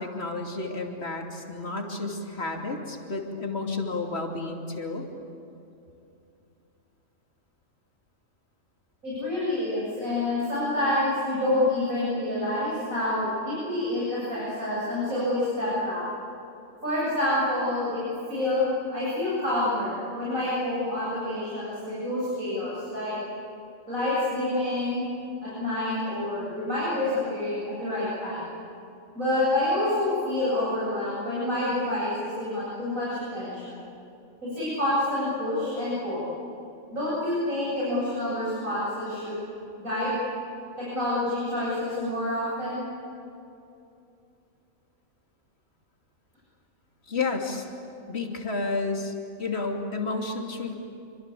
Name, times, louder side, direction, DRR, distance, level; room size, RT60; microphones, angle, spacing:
voice 1, 0.0-5.1 47.1-47.7 48.1-50.7, left 3 dB, 50° left, 1 dB, 3.1 m, -31 dB
voice 2, 9.0-16.0 16.8-18.0 18.3-23.1 23.9-25.1 25.4-28.4 29.1-33.7 34.4-36.3 36.9-39.3 39.8-40.2 40.8-42.8, left 1 dB, 85° right, -8 dB, 8.4 m, -27 dB
27.0 x 25.5 x 8.5 m, 2.7 s
omnidirectional pair, 1.4 m